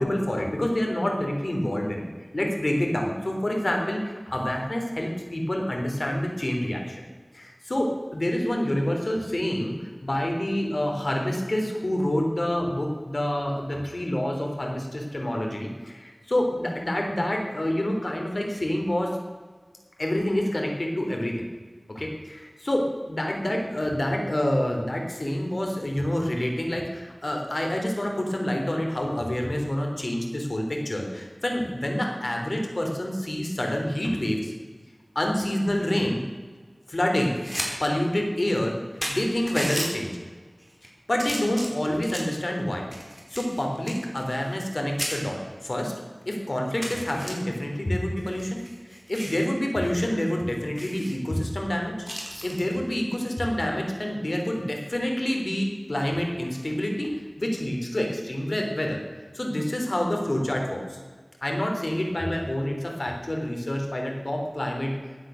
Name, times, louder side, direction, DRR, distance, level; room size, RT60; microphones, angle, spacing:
voice 1, 0.0-2.0 2.3-7.0 7.3-19.2 20.0-21.4 21.9-34.5 35.2-36.2 36.9-37.4 37.8-38.8 39.1-40.2 41.1-42.9 43.3-45.9 46.3-51.9 52.4-57.1 57.4-59.0 59.3-61.0 61.4-64.9, left 1 dB, 65° left, 1 dB, 3.5 m, -27 dB
sound 1, 37.2-37.7 38.1-38.2 38.7-38.8 39.0-39.9 40.6-40.9 41.2-42.4 42.9-44.7 45.0-45.2 45.8-45.9 46.2-46.3 46.8-47.3 48.2-49.4 49.8-50.0 50.3-50.4 50.7-51.1 52.0-52.6 54.3-54.6, equal, 5° right, 4.4 m, -34 dB
15.5 x 10.0 x 6.5 m, 1.4 s
wide cardioid pair, 45°, 0 cm